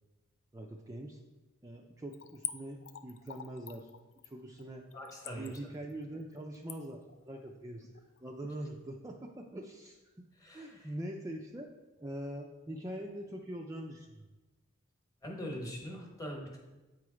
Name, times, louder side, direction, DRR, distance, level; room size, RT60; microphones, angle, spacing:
voice 1, 0.5-1.2 1.6-3.9 4.2-4.9 5.3-10.3 10.5-11.7 12.0-14.2, right 1 dB, 15° right, 1 dB, 0.4 m, -43 dB
Splash splatter / Trickle dribble, 2.1-8.5 8.9-9.0, left 11 dB, 65° left, 0.4 m, -46 dB
voice 2, 4.9-5.6 10.3-10.9 15.2-16.6, equal, 15° left, 0 dB, 1.1 m, -42 dB
8.4 x 3.1 x 4.8 m, 1.1 s
head